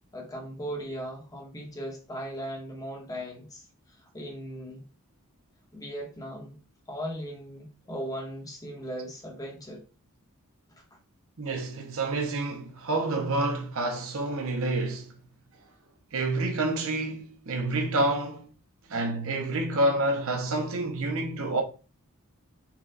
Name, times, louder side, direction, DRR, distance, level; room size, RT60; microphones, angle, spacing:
voice 1, 0.1-4.8 5.7-6.6 6.9-9.8 10.8-10.9, equal, 15° left, 1.0 m, -38 dB
voice 2, 11.4-15.1 16.1-18.5 18.9-21.6, right 2 dB, 65° right, 0.7 m, -28 dB
4.3 x 2.3 x 3.8 m
head